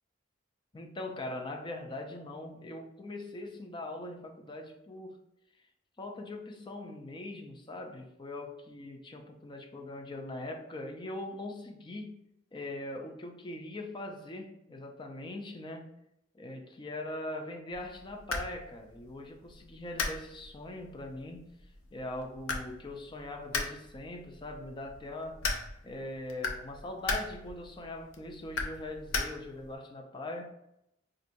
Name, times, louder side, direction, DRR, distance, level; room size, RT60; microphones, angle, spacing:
voice 1, 0.7-5.2 6.0-12.1 12.5-15.9 16.3-21.5 21.9-25.4 25.8-30.5, left 2 dB, 25° left, 3 dB, 0.4 m, -41 dB
sound 1, 17.7-29.7, left 3 dB, 85° left, 0.5 m, -39 dB
4.3 x 2.5 x 2.6 m, 0.81 s
head